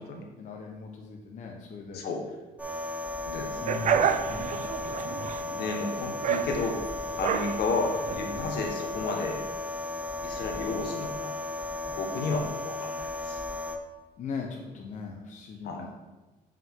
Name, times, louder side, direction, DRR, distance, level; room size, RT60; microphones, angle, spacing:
voice 1, 0.4-2.0 3.6-4.5 14.2-15.9, left 5 dB, 45° left, 0 dB, 0.9 m, -39 dB
sound 1, 2.6-13.8, left 2 dB, 10° right, 0.7 m, -35 dB
voice 2, 3.3-4.0 5.4-6.8 7.2-9.4 10.2-11.3 11.8-13.4 15.6-15.8, left 3 dB, 70° left, 2 dB, 1.3 m, -32 dB
sound 2, 3.7-8.7, right 8 dB, 45° right, 0.5 m, -30 dB
7.6 x 5.4 x 3.7 m, 1.1 s
cardioid pair, 110°, 17 cm